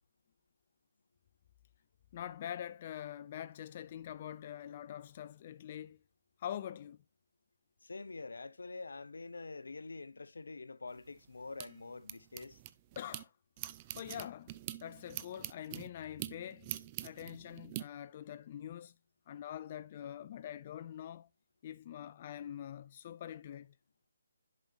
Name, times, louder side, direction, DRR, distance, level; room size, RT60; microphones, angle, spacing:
voice 1, 2.1-6.0 6.4-7.0 13.0-13.3 14.0-14.5 14.8-16.6 17.0-18.9 19.3-21.3 21.6-23.7, left 10 dB, 35° left, 0.4 m, -44 dB
voice 2, 7.8-12.6, left 3 dB, 80° left, 0.7 m, -46 dB
sound 1, 10.9-13.2 13.6-17.8, right 15 dB, 25° right, 0.5 m, -45 dB
10.5 x 5.2 x 2.7 m
hypercardioid pair, 155°, 0 cm